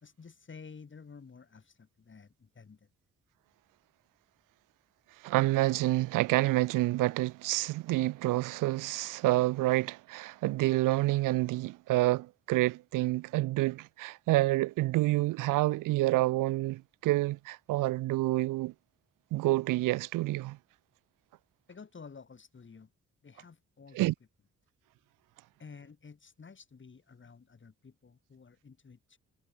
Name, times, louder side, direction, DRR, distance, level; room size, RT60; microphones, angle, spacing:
voice 1, 0.0-2.9 21.7-22.9 23.2-24.1 25.6-29.2, left 5 dB, 40° left, 2.5 m, -52 dB
voice 2, 5.2-18.7 19.3-20.6 23.9-24.1, right 18 dB, 80° right, 0.5 m, -28 dB
supercardioid pair, 55°, 31 cm